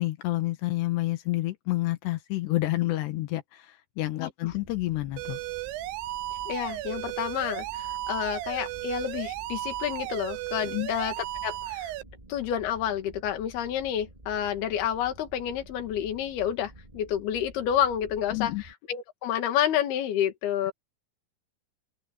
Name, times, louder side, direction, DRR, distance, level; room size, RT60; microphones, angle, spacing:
voice 1, 0.0-5.4 10.7-10.9 18.3-18.6, left 17 dB, 90° left, 3.6 m, -29 dB
voice 2, 4.2-4.5 6.5-11.1 11.4-11.9 12.3-18.5 18.9-20.7, left 10 dB, 70° left, 3.9 m, -29 dB
sound 1, 4.5-18.7, right 1 dB, 10° right, 3.3 m, -50 dB
sound 2, 5.2-12.0, right 16 dB, 85° right, 2.9 m, -35 dB
open air
omnidirectional pair, 4.7 m